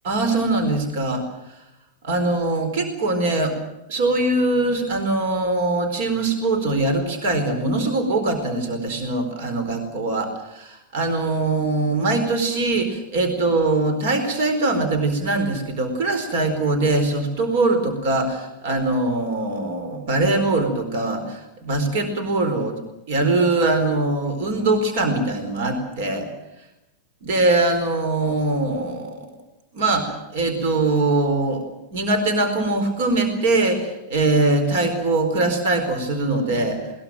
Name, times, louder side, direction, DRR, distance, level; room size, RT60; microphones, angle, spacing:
voice 1, 0.0-1.2 2.0-3.6 3.9-22.8 23.1-26.3 27.2-29.3 29.7-31.6 31.9-36.9, right 2 dB, 55° right, 8 dB, 4.4 m, -22 dB
21.5 x 20.5 x 7.8 m, 0.93 s
figure-of-eight pair, 90°, 0 cm